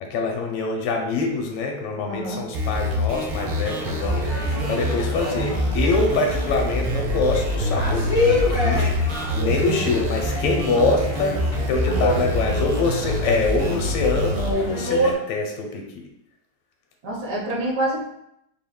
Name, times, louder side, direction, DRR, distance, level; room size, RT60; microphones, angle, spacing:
voice 1, 0.0-4.3 4.7-15.8, left 3 dB, 85° left, 1 dB, 1.6 m, -25 dB
voice 2, 2.1-2.4 11.9-12.6 17.0-18.0, right 1 dB, 55° right, -3 dB, 1.4 m, -26 dB
sound 1, 2.5-14.5, left 1 dB, 80° right, 1.8 m, -26 dB
sound 2, 3.4-15.1, equal, 20° right, 1.0 m, -28 dB
4.8 x 3.6 x 2.2 m, 0.80 s
omnidirectional pair, 2.4 m